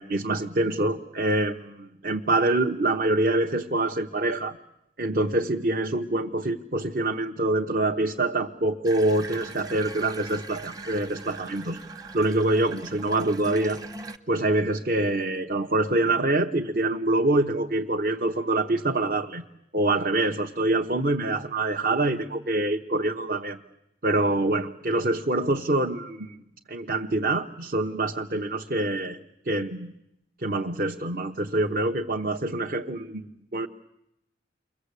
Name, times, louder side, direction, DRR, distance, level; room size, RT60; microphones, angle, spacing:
voice 1, 0.0-4.6 5.0-11.8 12.1-13.8 14.3-19.4 19.7-23.6 24.0-26.4 26.7-29.2 29.4-29.9 30.4-33.3 33.5-33.7, right 2 dB, 45° right, 3 dB, 1.0 m, -25 dB
Water tap faucet / Bathtub (filling or washing), 8.8-14.2, right 2 dB, 20° right, 1.1 m, -41 dB
29.5 x 23.0 x 8.3 m, 0.84 s
head